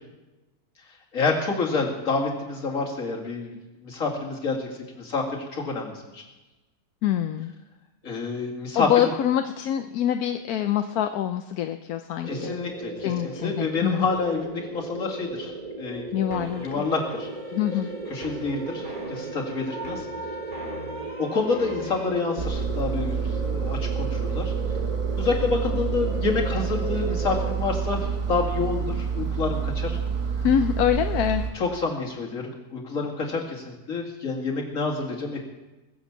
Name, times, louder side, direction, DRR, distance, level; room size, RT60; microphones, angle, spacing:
voice 1, 1.1-3.5 3.8-4.7 5.0-6.2 8.0-9.1 12.3-13.1 13.4-15.5 15.8-16.1 16.6-17.3 18.1-20.1 21.2-24.5 25.2-30.0 31.5-35.4, left 4 dB, 60° left, -1 dB, 2.6 m, -28 dB
voice 2, 7.0-7.5 8.7-12.5 13.0-14.1 16.1-16.7 17.5-17.9 30.4-31.5, left 10 dB, 80° left, 7 dB, 1.2 m, -25 dB
sound 1, 12.2-27.6, right 3 dB, 30° right, 1.0 m, -36 dB
sound 2, 16.3-22.1, right 1 dB, 50° right, 3.2 m, -40 dB
Engine, 22.4-31.5, right 6 dB, 85° right, 1.8 m, -28 dB
21.0 x 7.3 x 7.2 m, 1.1 s
omnidirectional pair, 1.6 m